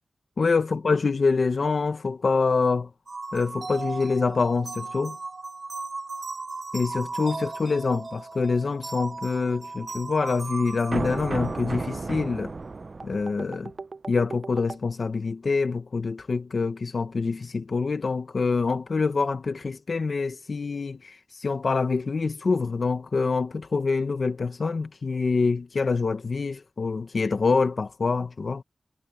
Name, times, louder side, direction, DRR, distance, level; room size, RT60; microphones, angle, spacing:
voice 1, 0.4-2.9 3.3-5.2 6.7-12.5 13.0-13.7 14.1-28.6, left 4 dB, 65° left, 1.1 m, -26 dB
sound 1, 3.1-14.8, right 3 dB, 55° right, 0.6 m, -35 dB
wide cardioid pair, 70°, 0 cm